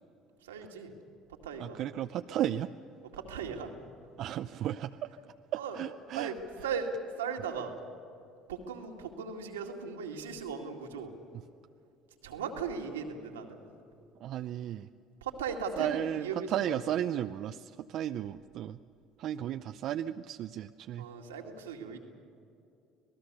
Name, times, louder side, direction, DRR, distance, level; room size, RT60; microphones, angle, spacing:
voice 1, 0.4-0.9 1.4-1.8 2.3-2.4 3.1-3.7 5.5-5.8 6.1-6.3 6.6-7.7 8.5-11.1 12.2-13.6 15.2-16.7 21.0-22.0, right 6 dB, 90° right, 2 dB, 2.2 m, -37 dB
voice 2, 1.6-2.7 4.2-5.1 5.5-6.3 14.2-14.9 15.8-18.8 19.2-21.1, right 11 dB, 60° right, 9 dB, 0.5 m, -34 dB
26.5 x 18.5 x 6.8 m, 2.7 s
hypercardioid pair, 65°, 0 cm